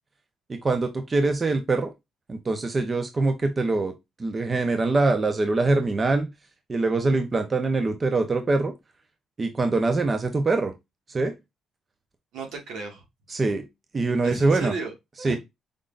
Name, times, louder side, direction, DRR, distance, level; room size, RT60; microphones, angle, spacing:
voice 1, 0.5-1.9 2.3-3.9 4.2-6.3 6.7-8.7 9.4-10.7 11.1-11.3 13.3-13.6 13.9-14.7 15.2-15.4, right 3 dB, 30° right, 0.8 m, -23 dB
voice 2, 12.3-13.0 14.2-15.4, right 4 dB, 80° right, 1.8 m, -35 dB
5.2 x 3.6 x 2.5 m
cardioid pair, 90°, 0 cm